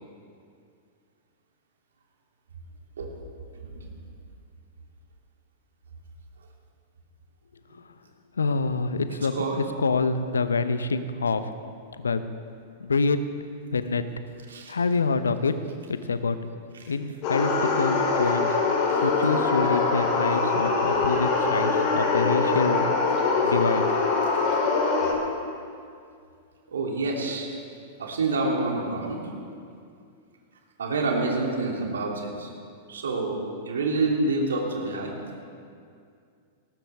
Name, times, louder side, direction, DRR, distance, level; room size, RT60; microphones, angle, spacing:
voice 1, 3.6-3.9 9.3-9.6 14.5-14.7 16.8-16.9 26.7-27.5 28.0-29.3 30.8-32.5 32.9-33.4 33.6-35.1, right 3 dB, 70° right, -1 dB, 2.9 m, -27 dB
voice 2, 8.4-11.4 12.0-12.2 12.8-13.2 13.7-14.0 14.7-15.5 15.9-16.4 16.9-18.6 19.0-23.1 23.4-23.9, left 4 dB, 75° left, 11 dB, 0.8 m, -26 dB
sound 1, 17.2-25.1, left 4 dB, 40° left, 3.4 m, -23 dB
19.5 x 18.0 x 3.6 m, 2.3 s
figure-of-eight pair, 95°, 0 cm